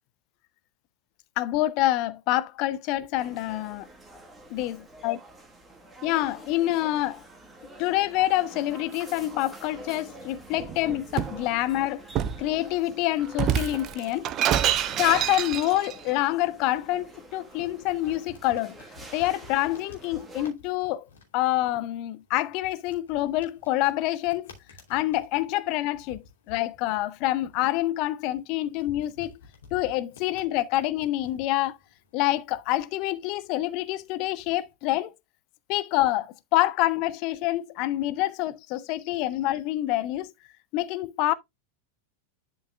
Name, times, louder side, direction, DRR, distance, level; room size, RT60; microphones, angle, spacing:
voice 1, 1.4-3.9 4.5-4.8 5.0-5.2 6.0-7.2 7.8-12.0 12.4-14.3 15.0-18.7 19.1-21.0 21.3-24.5 24.9-29.3 29.7-31.8 32.1-35.1 35.7-40.3 40.7-41.3, left 15 dB, 40° left, 0.6 m, -27 dB
sound 1, 3.2-20.5, right 1 dB, 10° right, 1.5 m, -47 dB
Shatter, 10.6-11.4 12.2-12.5 13.3-16.0, right 10 dB, 35° right, 0.6 m, -27 dB
sound 2, 16.5-34.7, left 4 dB, 65° left, 2.8 m, -53 dB
11.0 x 5.4 x 2.4 m
figure-of-eight pair, 90°, 0 cm